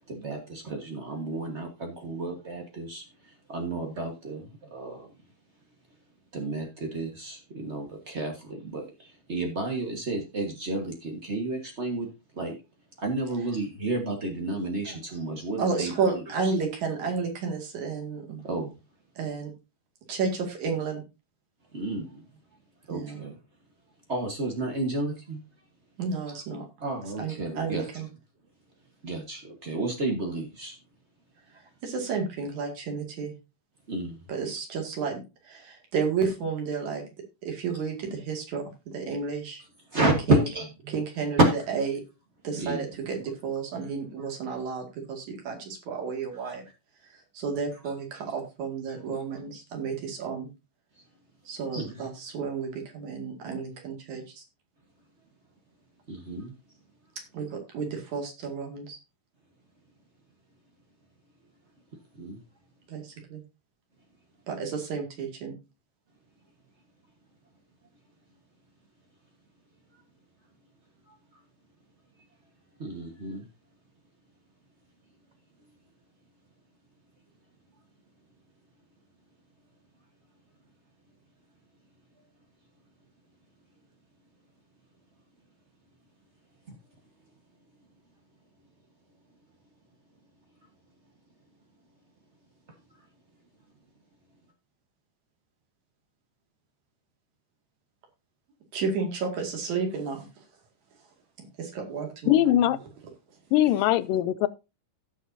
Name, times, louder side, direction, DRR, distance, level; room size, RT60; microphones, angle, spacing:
voice 1, 0.1-5.1 6.3-12.1 12.3-12.6 13.0-16.5 18.4-18.8 21.7-22.2 22.9-23.4 24.1-25.4 26.3-26.4 26.8-28.0 29.0-30.8 33.9-34.2 39.9-41.0 41.4-41.5 42.6-42.9 43.8-43.9 44.2-44.3 48.1-48.2 51.7-52.1 56.1-56.5 62.2-62.4 72.8-73.4, right 2 dB, 80° right, 0.6 m, -31 dB
voice 2, 15.6-18.4 19.2-19.5 20.1-21.0 22.9-23.2 26.0-26.7 27.2-28.1 31.8-33.3 34.3-35.2 35.5-37.0 37.4-39.6 40.3-40.4 40.9-42.0 42.4-46.6 47.3-50.5 51.5-54.4 57.3-59.0 62.9-63.4 64.5-65.5 98.7-100.3 101.4-102.7, right 5 dB, 60° right, 3.5 m, -32 dB
voice 3, 102.3-102.8 103.5-104.5, left 12 dB, 85° left, 2.3 m, -21 dB
16.5 x 6.7 x 2.7 m
omnidirectional pair, 3.9 m